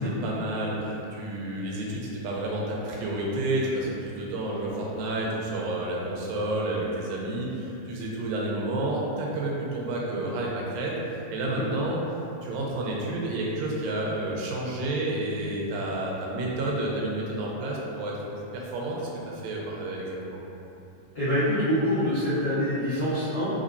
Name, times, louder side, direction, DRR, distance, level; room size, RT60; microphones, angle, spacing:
voice 1, 0.0-10.9 11.3-12.0 12.4-18.2 18.5-19.1 19.4-20.4, right 1 dB, 90° right, -3 dB, 2.4 m, -30 dB
voice 2, 21.1-23.5, equal, 85° left, -16 dB, 0.9 m, -25 dB
5.3 x 3.3 x 2.6 m, 2.8 s
omnidirectional pair, 4.0 m